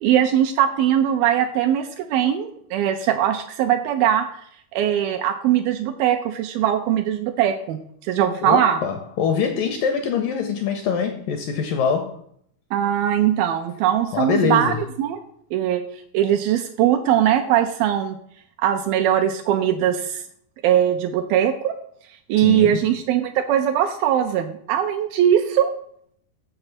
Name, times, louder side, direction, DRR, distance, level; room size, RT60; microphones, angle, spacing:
voice 1, 0.0-4.3 4.7-8.8 12.7-15.2 15.5-15.8 16.1-18.2 18.6-20.2 20.6-21.8 22.3-25.7, right 10 dB, 85° right, 7 dB, 2.2 m, -20 dB
voice 2, 8.4-12.2 14.1-14.8 22.4-22.9, left 6 dB, 80° left, 5 dB, 2.0 m, -24 dB
7.0 x 6.6 x 5.9 m, 0.67 s
omnidirectional pair, 4.7 m